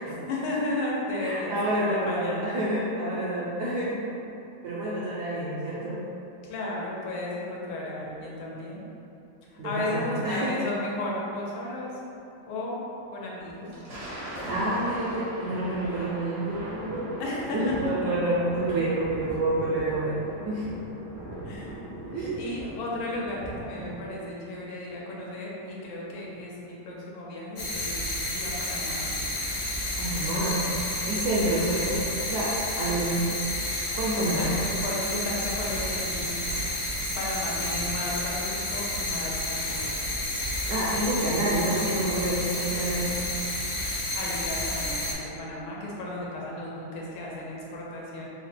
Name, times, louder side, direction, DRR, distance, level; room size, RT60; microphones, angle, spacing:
voice 1, 0.1-2.5 6.4-8.9 9.6-11.9 12.5-14.0 17.2-17.7 18.2-18.3 21.4-21.7 22.4-29.2 34.1-36.6 36.9-40.2 42.6-42.7 44.1-48.2, left 1 dB, 85° left, -4 dB, 1.5 m, -34 dB
voice 2, 1.2-4.0 4.6-6.0 9.6-10.5 14.5-17.2 17.5-20.7 22.1-22.4 30.0-30.6 31.1-33.3 33.9-34.5 40.7-43.1, right 1 dB, 75° right, -8 dB, 0.9 m, -28 dB
Thunder, 13.5-24.2, right 1 dB, 60° right, 0.5 m, -39 dB
sound 1, 27.6-45.1, left 1 dB, 55° left, 0.9 m, -30 dB
3.5 x 2.1 x 4.1 m, 2.8 s
omnidirectional pair, 2.2 m